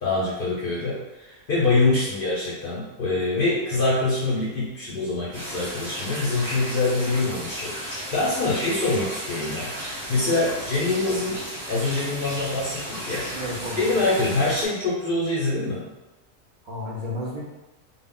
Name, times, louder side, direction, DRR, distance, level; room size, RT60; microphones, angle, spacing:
voice 1, 0.0-11.4 11.7-13.4 13.7-15.8, left 2 dB, 60° left, -7 dB, 0.5 m, -25 dB
voice 2, 1.6-1.9 13.3-13.8 16.6-17.4, left 1 dB, 80° right, -6 dB, 0.4 m, -32 dB
sound 1, 5.3-14.7, equal, 30° right, 0.7 m, -34 dB
2.3 x 2.0 x 3.5 m, 1.1 s
omnidirectional pair, 1.4 m